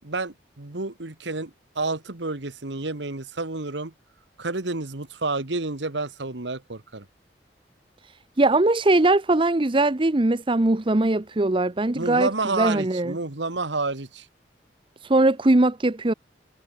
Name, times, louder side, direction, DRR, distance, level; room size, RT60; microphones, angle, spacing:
voice 1, 0.0-1.5 1.8-3.9 4.4-7.1 11.9-14.3, right 3 dB, 80° right, 1.7 m, -29 dB
voice 2, 8.4-12.3 12.6-13.1 15.1-16.1, right 2 dB, 30° right, 0.8 m, -20 dB
head